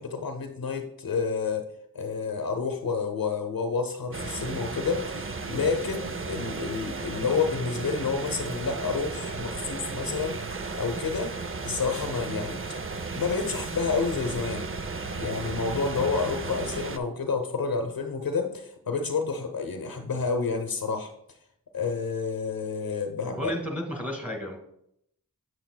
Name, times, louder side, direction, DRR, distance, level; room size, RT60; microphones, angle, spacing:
voice 1, 0.0-10.4 10.7-11.4 11.6-12.6 13.1-14.7 15.2-21.1 21.7-23.5, left 4 dB, 70° left, 5 dB, 0.8 m, -29 dB
sound 1, 4.1-17.0, right 3 dB, 35° right, 0.6 m, -34 dB
voice 2, 23.3-24.6, equal, 5° right, 1 dB, 2.2 m, -32 dB
7.8 x 7.8 x 2.2 m, 0.75 s
cardioid pair, 40°, 37 cm